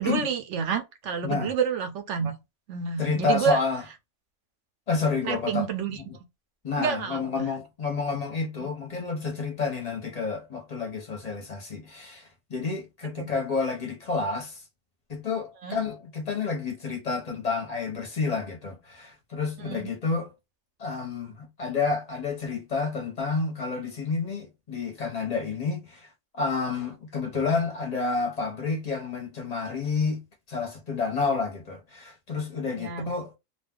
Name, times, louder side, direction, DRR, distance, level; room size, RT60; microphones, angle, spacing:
voice 1, 0.0-2.4 2.7-3.6 5.2-6.0 6.8-7.4 8.6-8.7 13.2-13.3 15.6-15.8 19.6-19.9 32.8-33.1, right 7 dB, 65° right, 0.8 m, -29 dB
voice 2, 1.2-1.5 3.0-3.8 4.9-5.7 6.0-6.1 6.6-14.6 15.1-20.3 20.8-30.2 30.5-33.3, left 4 dB, 35° left, 0.7 m, -29 dB
2.5 x 2.2 x 3.5 m
omnidirectional pair, 1.4 m